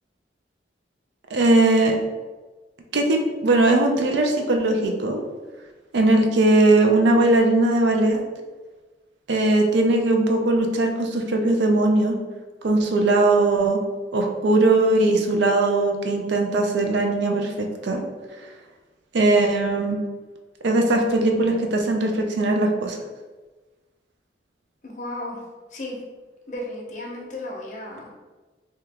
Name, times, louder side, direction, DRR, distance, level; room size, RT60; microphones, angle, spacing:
voice 1, 1.3-2.0 2.9-5.2 5.9-8.2 9.3-12.2 12.6-13.8 14.1-18.0 18.3-18.6 19.1-20.0 20.6-23.0, right 2 dB, 75° right, 3 dB, 0.4 m, -20 dB
voice 2, 24.8-25.4 25.7-26.0 26.5-28.1, left 1 dB, 40° left, -1 dB, 0.6 m, -34 dB
2.8 x 2.3 x 3.3 m, 1.3 s
head